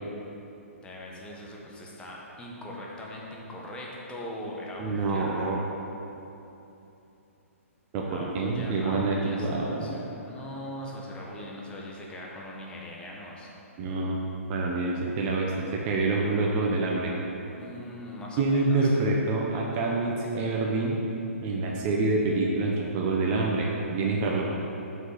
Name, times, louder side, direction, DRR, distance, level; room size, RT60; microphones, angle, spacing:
voice 1, 0.8-5.6 8.1-13.5 17.6-19.0, left 1 dB, 15° left, -3 dB, 1.4 m, -41 dB
voice 2, 4.8-5.6 7.9-10.0 13.8-14.2 14.5-17.1 18.4-21.0 21.4-24.4, right 3 dB, 30° right, -2 dB, 1.0 m, -26 dB
7.8 x 5.4 x 6.8 m, 2.9 s
hypercardioid pair, 130°, 8 cm